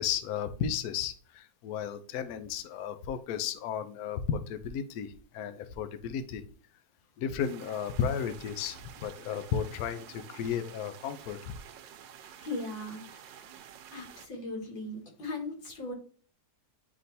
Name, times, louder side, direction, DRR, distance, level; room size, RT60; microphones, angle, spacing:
voice 1, 0.0-6.4 7.2-11.5, left 8 dB, 70° left, 9 dB, 0.9 m, -34 dB
sound 1, 7.4-14.3, right 9 dB, 80° right, 1.3 m, -50 dB
voice 2, 12.2-13.5 13.9-15.9, left 2 dB, 90° left, -1 dB, 2.6 m, -39 dB
9.7 x 3.7 x 2.7 m, 0.41 s
omnidirectional pair, 2.0 m